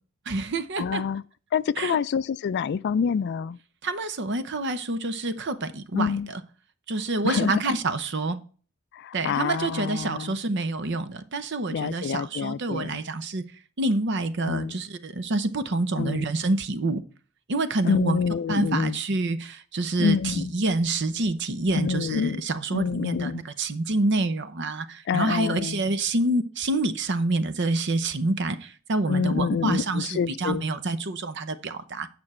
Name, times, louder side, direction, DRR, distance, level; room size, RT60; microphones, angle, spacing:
voice 1, 0.3-1.0 1.8-2.0 3.8-6.4 6.9-8.4 9.1-13.4 13.8-17.0 17.5-18.2 18.5-32.1, right 2 dB, 60° right, 0.7 m, -27 dB
voice 2, 0.8-1.2 1.5-3.6 5.9-6.3 7.2-7.7 8.9-10.4 11.7-13.0 14.4-14.7 16.0-16.3 17.8-19.0 20.0-20.5 21.7-22.4 22.7-23.4 25.1-25.8 29.1-30.6, left 6 dB, 55° left, 0.3 m, -27 dB
8.8 x 6.0 x 4.3 m
head